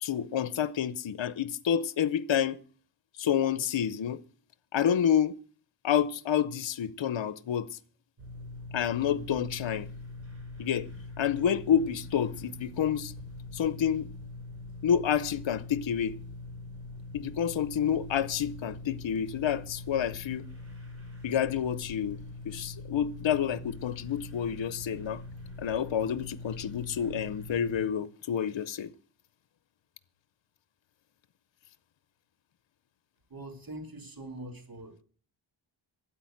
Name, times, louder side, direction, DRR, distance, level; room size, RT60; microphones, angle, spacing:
voice 1, 0.0-2.6 3.2-4.2 4.7-5.3 5.8-7.8 8.7-9.9 10.6-10.9 11.2-13.1 13.5-14.1 14.8-16.1 17.1-20.4 21.2-22.2 22.5-25.2 25.6-28.9, left 8 dB, 70° left, 0.8 m, -29 dB
sound 1, 8.2-27.8, left 2 dB, 30° right, 4.7 m, -43 dB
voice 2, 33.3-35.0, right 1 dB, 45° right, 3.3 m, -43 dB
13.0 x 8.8 x 7.8 m
wide cardioid pair, 100°, 48 cm